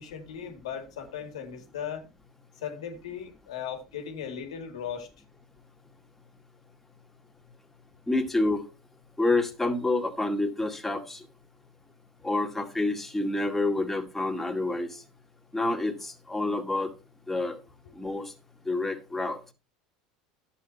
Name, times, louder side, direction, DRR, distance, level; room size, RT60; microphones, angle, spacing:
voice 1, 0.0-2.1 2.5-5.1, left 8 dB, 85° left, 2.0 m, -37 dB
voice 2, 8.1-8.6 9.2-11.2 12.2-15.0 15.5-16.9 17.3-17.6 18.0-18.3 18.7-19.4, left 2 dB, 10° left, 2.1 m, -28 dB
11.0 x 7.6 x 4.2 m
hypercardioid pair, 90°, 3 cm